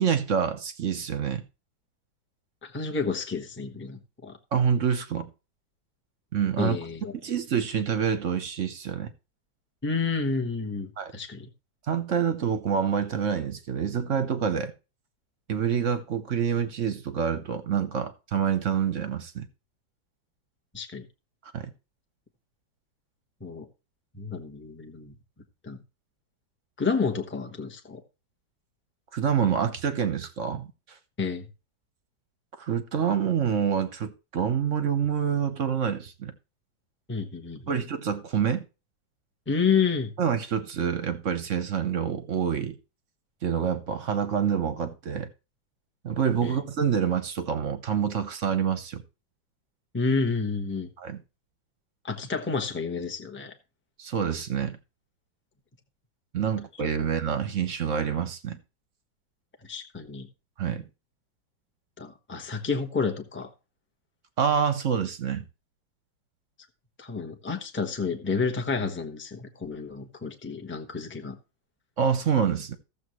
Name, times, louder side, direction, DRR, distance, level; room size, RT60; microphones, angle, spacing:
voice 1, 0.0-1.4 4.5-5.3 6.3-6.8 7.2-9.1 11.0-11.1 11.9-14.7 15.5-19.5 21.5-21.7 29.1-30.7 32.6-36.3 37.7-38.6 40.2-42.7 43.4-45.3 46.0-49.0 51.0-51.2 54.0-54.8 56.3-58.6 60.6-60.8 64.4-65.4 72.0-72.7, right 7 dB, 50° right, 1.0 m, -27 dB
voice 2, 2.6-4.4 6.6-7.0 9.8-11.5 20.7-21.0 23.4-23.7 24.2-25.1 25.6-25.8 26.8-28.0 31.2-31.4 37.1-37.8 39.5-40.1 46.4-46.6 49.9-50.9 52.0-53.5 59.7-60.3 62.0-63.5 67.0-71.4, left 5 dB, 10° left, 1.0 m, -30 dB
15.0 x 7.3 x 3.1 m
omnidirectional pair, 2.1 m